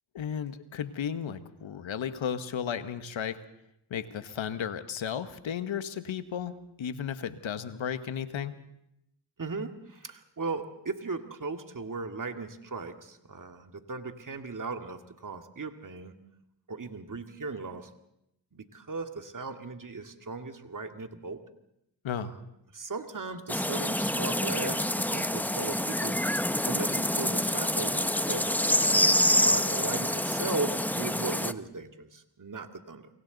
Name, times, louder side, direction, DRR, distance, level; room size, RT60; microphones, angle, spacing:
voice 1, 0.1-3.4 3.9-8.5 22.0-22.3, left 8 dB, 75° left, 11 dB, 1.4 m, -34 dB
voice 2, 9.4-16.1 16.7-17.9 18.5-21.4 22.2-22.4 22.7-26.4 26.6-28.5 29.4-33.1, right 3 dB, 40° right, 6 dB, 2.2 m, -37 dB
sound 1, 23.5-31.5, left 1 dB, 5° left, 0.9 m, -27 dB
28.0 x 24.0 x 4.1 m, 0.80 s
cardioid pair, 50°, 47 cm